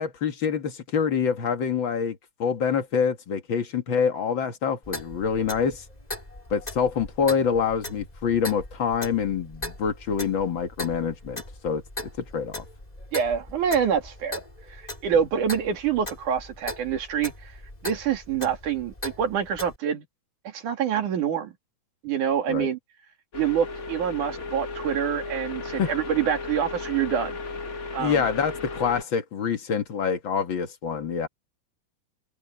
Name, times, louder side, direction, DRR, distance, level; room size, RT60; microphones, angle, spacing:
voice 1, 0.0-5.8 6.5-11.8 12.2-12.6 22.5-22.7 25.7-26.0 28.0-31.3, left 6 dB, 45° left, 2.0 m, -26 dB
Clock, 4.8-19.8, left 1 dB, 10° left, 4.3 m, -39 dB
voice 2, 13.1-14.4 14.7-17.3 17.8-20.0 20.5-21.5 22.0-22.8 23.3-27.4 27.9-28.2, right 8 dB, 75° right, 3.9 m, -26 dB
sound 1, 23.3-29.0, left 3 dB, 65° left, 0.7 m, -35 dB
omnidirectional pair, 3.6 m